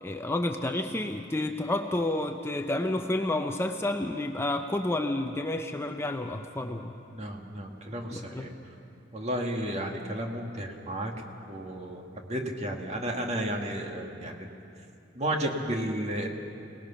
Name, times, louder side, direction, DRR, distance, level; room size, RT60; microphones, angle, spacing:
voice 1, 0.0-6.9 8.1-8.6, left 1 dB, 15° left, 5 dB, 0.6 m, -30 dB
voice 2, 7.1-8.5 9.1-11.1 11.5-14.5 15.1-16.3, right 1 dB, 35° right, 2 dB, 2.0 m, -33 dB
27.5 x 19.0 x 5.9 m, 2.6 s
head